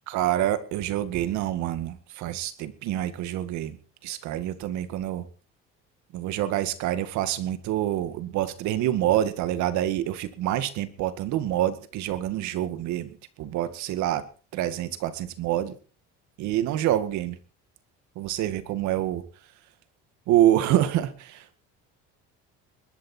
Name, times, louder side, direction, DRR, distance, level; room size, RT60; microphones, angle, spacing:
voice 1, 0.1-3.8 4.0-5.3 6.1-14.2 14.5-15.8 16.4-17.4 18.2-19.2 20.3-21.6, right 12 dB, 70° right, 11 dB, 2.0 m, -26 dB
21.0 x 12.0 x 4.5 m, 0.38 s
cardioid pair, 125°, 30 cm